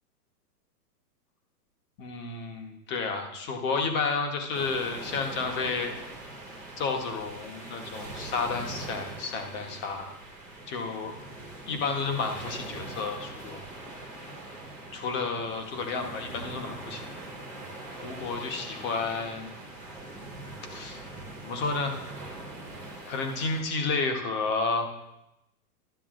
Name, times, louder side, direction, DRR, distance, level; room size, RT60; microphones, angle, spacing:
voice 1, 2.0-5.9 6.8-10.1 10.7-11.1 11.7-13.6 14.9-17.0 18.0-19.6 20.7-21.0 21.4-22.0 23.1-24.9, left 4 dB, 25° left, 4 dB, 1.0 m, -31 dB
sound 1, 4.5-23.6, right 2 dB, 5° left, 0.4 m, -42 dB
12.5 x 8.3 x 2.5 m, 0.89 s
hypercardioid pair, 150°, 46 cm